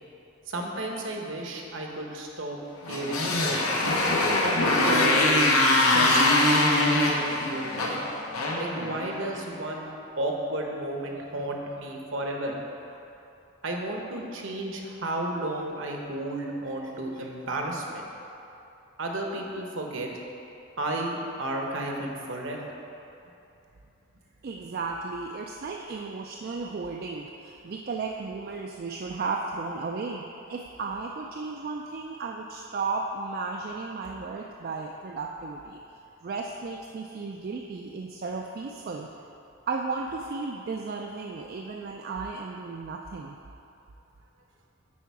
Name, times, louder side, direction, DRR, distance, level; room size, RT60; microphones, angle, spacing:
voice 1, 0.5-2.6 2.9-3.9 4.4-5.5 5.9-6.2 6.5-8.0 8.6-12.6 12.9-13.0 13.6-18.1 19.0-20.1 20.8-22.7, right 1 dB, 60° right, 1 dB, 0.9 m, -33 dB
Motorcycle, 2.8-9.4, left 2 dB, 90° left, 1.1 m, -23 dB
voice 2, 24.4-35.8 36.2-39.1 39.7-43.4, right 4 dB, 45° right, 1 dB, 0.3 m, -34 dB
8.5 x 4.6 x 4.7 m, 2.8 s
head